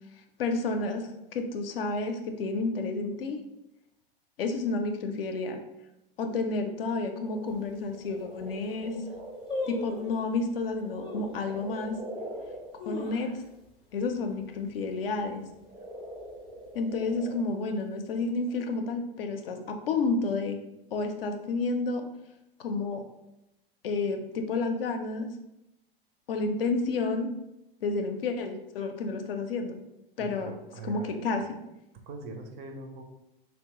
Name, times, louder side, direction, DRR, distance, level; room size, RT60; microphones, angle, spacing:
voice 1, 0.4-3.4 4.4-5.6 6.2-8.9 9.7-12.0 12.9-13.3 13.9-15.4 16.7-20.6 20.9-22.1 22.6-23.0 23.8-25.3 26.3-27.3 27.8-29.8 30.2-30.5 30.8-31.6, left 3 dB, 75° left, 5 dB, 0.4 m, -30 dB
sound 1, 7.2-13.5 14.7-18.8, right 1 dB, 80° right, 1.0 m, -43 dB
sound 2, 7.5-7.6 8.2-8.3 8.5-8.9 9.5-10.2 11.0-11.4 11.9-12.0 12.6-13.7 14.0-14.1 14.4-14.8 15.2-15.5 16.2-16.9 17.2-17.3, left 2 dB, 20° left, 0.4 m, -37 dB
voice 2, 30.2-31.2 32.1-33.0, right 3 dB, 35° right, 4 dB, 0.4 m, -42 dB
2.8 x 2.1 x 2.8 m, 0.89 s
figure-of-eight pair, 90°, 29 cm